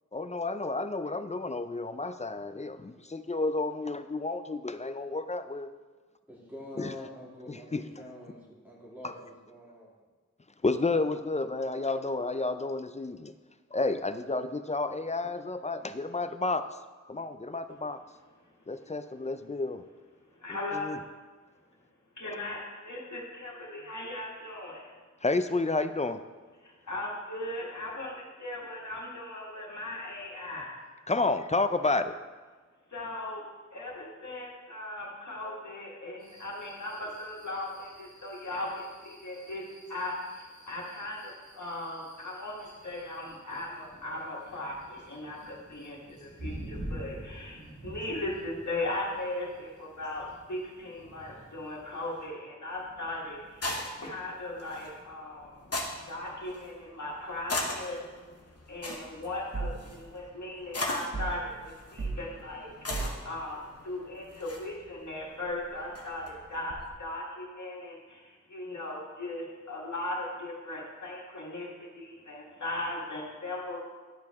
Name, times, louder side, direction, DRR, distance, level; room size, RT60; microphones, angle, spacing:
voice 1, 0.1-5.7 6.8-6.9 7.5-7.8 9.0-9.1 10.6-13.3 13.7-16.6 17.1-18.0 18.7-19.8 20.7-21.0 25.2-26.2 31.1-32.1, left 3 dB, 25° left, 10 dB, 0.4 m, -31 dB
voice 2, 6.3-9.9 23.8-23.9, left 1 dB, 5° right, -6 dB, 2.5 m, -46 dB
voice 3, 20.4-21.0 22.2-22.6 22.8-24.9 26.6-30.8 32.9-33.4 33.7-39.6 39.9-55.7 56.1-58.0 58.7-62.7 63.2-73.8, left 1 dB, 75° left, -3 dB, 1.7 m, -38 dB
sound 1, 36.2-52.3, right 1 dB, 85° right, 1.9 m, -48 dB
sound 2, 52.7-66.9, left 2 dB, 55° left, 1.1 m, -40 dB
sound 3, 59.5-59.9 61.1-61.5 62.0-62.2 62.9-63.2, right 3 dB, 45° right, 1.0 m, -34 dB
10.5 x 4.7 x 3.5 m, 1.4 s
wide cardioid pair, 45°, 29 cm